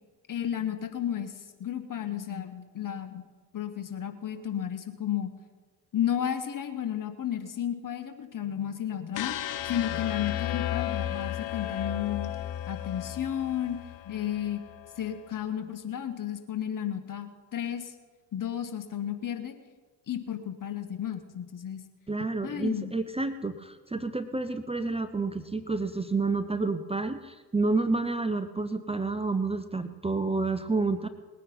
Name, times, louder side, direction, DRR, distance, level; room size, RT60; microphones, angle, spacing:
voice 1, 0.3-3.2 3.5-5.3 5.9-9.4 9.6-12.3 12.7-13.8 14.1-14.6 15.0-17.9 18.3-19.6 20.1-21.8 22.4-22.9, left 10 dB, 40° left, 8 dB, 1.8 m, -33 dB
sound 1, 9.1-15.2, left 12 dB, 60° left, 1.0 m, -34 dB
voice 2, 22.1-31.1, right 3 dB, 10° right, 10 dB, 0.8 m, -29 dB
20.0 x 9.4 x 5.5 m, 1.4 s
figure-of-eight pair, 45°, 47 cm